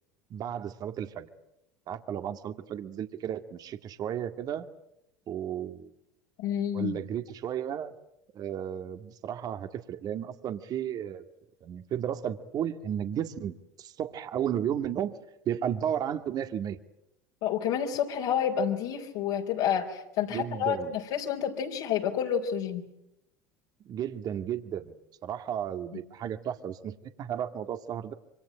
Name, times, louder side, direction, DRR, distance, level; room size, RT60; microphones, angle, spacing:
voice 1, 0.3-1.3 1.9-4.7 5.3-5.9 6.7-7.9 8.3-11.3 11.6-15.2 15.5-16.8 20.3-21.0 23.9-25.0 25.2-28.1, right 9 dB, 45° right, 9 dB, 2.0 m, -33 dB
voice 2, 6.4-7.0 17.4-22.8, left 8 dB, 65° left, -1 dB, 3.7 m, -29 dB
26.5 x 25.0 x 8.8 m, 0.80 s
hypercardioid pair, 80°, 9 cm